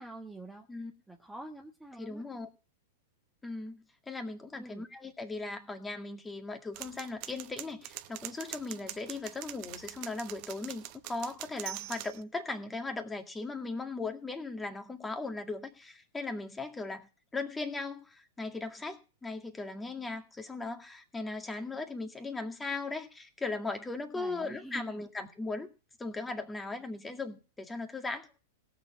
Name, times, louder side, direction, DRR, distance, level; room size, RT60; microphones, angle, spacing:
voice 1, 0.0-0.7 1.1-2.2 4.5-4.8 24.1-25.0, right 1 dB, 5° right, 2 dB, 1.3 m, -45 dB
voice 2, 2.0-2.5 3.4-25.7 26.0-28.3, left 3 dB, 10° left, 5 dB, 2.0 m, -38 dB
sound 1, 6.7-12.2, right 16 dB, 50° right, 0.8 m, -44 dB
17.5 x 7.0 x 5.6 m, 0.34 s
hypercardioid pair, 105°, 0 cm